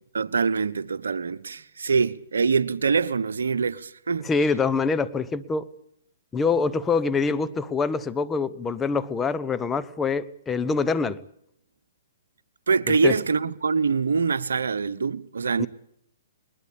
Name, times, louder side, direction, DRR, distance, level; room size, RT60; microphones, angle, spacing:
voice 1, 0.1-4.2 12.7-15.7, right 5 dB, 80° right, 1.1 m, -24 dB
voice 2, 4.2-5.7 6.3-11.2 12.9-13.1 15.6-15.7, left 4 dB, 15° left, 1.1 m, -25 dB
21.0 x 21.0 x 8.7 m
hypercardioid pair, 130°, 0 cm